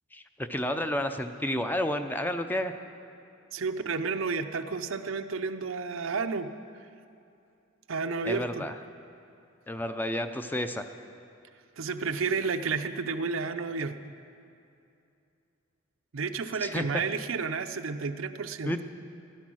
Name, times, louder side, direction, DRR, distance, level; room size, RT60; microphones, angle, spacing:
voice 1, 0.1-2.7 8.2-8.7 9.7-10.9 16.6-17.0 18.7-18.8, left 1 dB, 10° left, 8 dB, 0.5 m, -31 dB
voice 2, 3.5-6.5 7.9-8.7 11.8-14.0 16.1-18.7, right 4 dB, 75° right, 8 dB, 0.6 m, -31 dB
14.5 x 11.5 x 6.2 m, 2.6 s
head